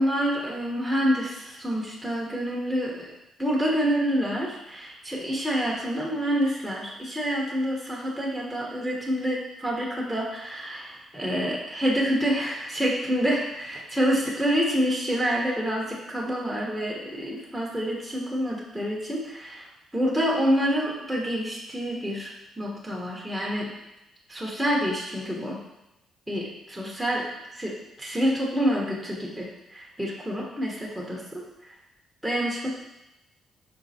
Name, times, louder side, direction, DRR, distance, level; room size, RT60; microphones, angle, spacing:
voice 1, 0.0-3.1 3.4-23.7 24.3-25.6 26.3-27.3 27.5-31.7 32.2-32.7, equal, 5° right, -4 dB, 0.9 m, -27 dB
5.2 x 3.6 x 2.8 m, 0.91 s
cardioid pair, 90°, 0 cm